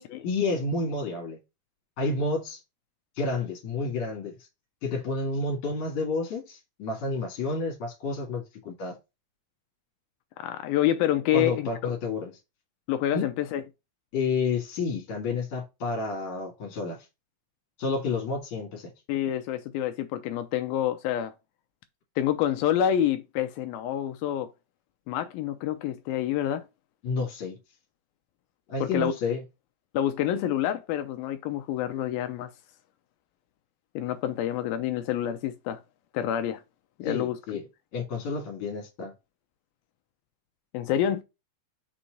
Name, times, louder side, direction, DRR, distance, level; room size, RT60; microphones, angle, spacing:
voice 1, 0.0-1.4 2.0-2.6 3.2-4.4 4.8-9.0 11.3-12.3 13.1-13.3 14.1-17.1 17.8-18.9 27.0-27.6 28.7-29.4 37.0-37.6 37.9-39.1, left 3 dB, 50° left, 2.8 m, -30 dB
voice 2, 10.4-11.7 12.9-13.6 19.1-21.3 22.2-24.5 25.1-26.7 28.8-29.1 29.9-32.5 34.0-35.8 36.1-36.6 37.0-37.6 40.7-41.2, left 11 dB, 80° left, 2.2 m, -27 dB
6.2 x 4.3 x 5.1 m
omnidirectional pair, 4.8 m